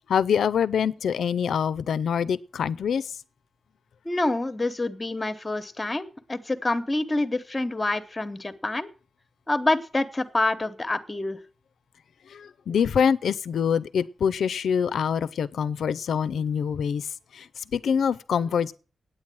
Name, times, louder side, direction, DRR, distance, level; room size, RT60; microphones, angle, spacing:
voice 1, 0.1-3.0 12.3-17.1 17.3-18.7, left 7 dB, 85° left, 0.5 m, -25 dB
voice 2, 4.0-8.9 9.5-11.4, left 2 dB, 20° left, 1.0 m, -27 dB
9.1 x 8.8 x 7.6 m
wide cardioid pair, 125°, 0 cm